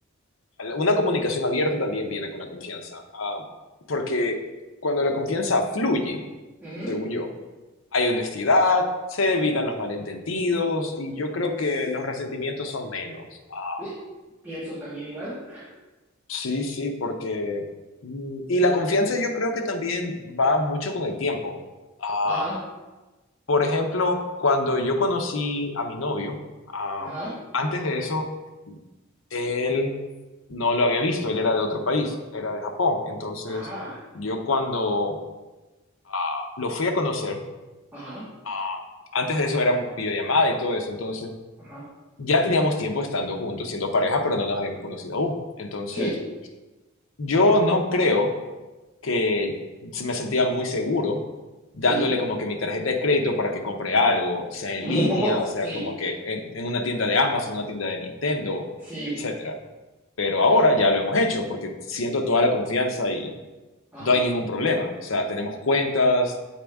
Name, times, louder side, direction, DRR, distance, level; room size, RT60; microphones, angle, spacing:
voice 1, 0.6-3.4 3.9-4.4 4.8-6.2 6.9-7.3 7.9-13.8 16.3-17.6 18.0-21.6 22.0-22.5 23.5-26.4 26.7-27.1 27.5-28.3 28.7-28.8 29.3-29.9 30.5-33.7 34.1-35.2 36.1-37.4 38.4-38.8 39.1-41.3 42.2-46.1 47.2-48.3 49.0-49.5 49.8-51.2 51.7-58.7 59.2-59.6 60.2-63.3 64.0-66.3, left 2 dB, 70° left, 4 dB, 0.7 m, -24 dB
voice 2, 6.6-6.9 13.8-13.9 14.4-15.6 22.2-22.5 27.0-27.3 33.4-34.0 37.9-38.2 41.6-41.8 45.9-46.1 51.8-52.1 54.8-55.3 55.6-55.8 58.8-59.1 63.9-64.2, right 1 dB, 10° right, -12 dB, 1.8 m, -31 dB
7.5 x 4.2 x 3.5 m, 1.2 s
head